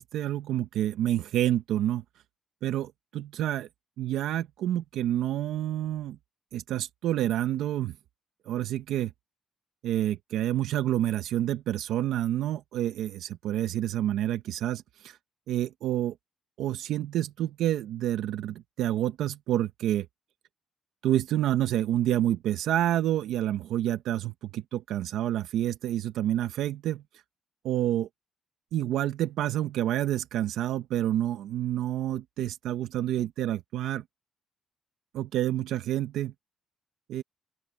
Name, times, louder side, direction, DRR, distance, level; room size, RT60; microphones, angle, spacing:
voice 1, 0.0-2.0 2.6-3.7 4.0-6.2 6.5-8.0 8.5-9.1 9.8-15.2 15.5-16.1 16.6-20.1 21.0-27.0 27.6-28.1 28.7-34.0 35.1-36.3 37.1-37.2, right 12 dB, 85° right, 1.0 m, -28 dB
open air
cardioid pair, 90°, 0 cm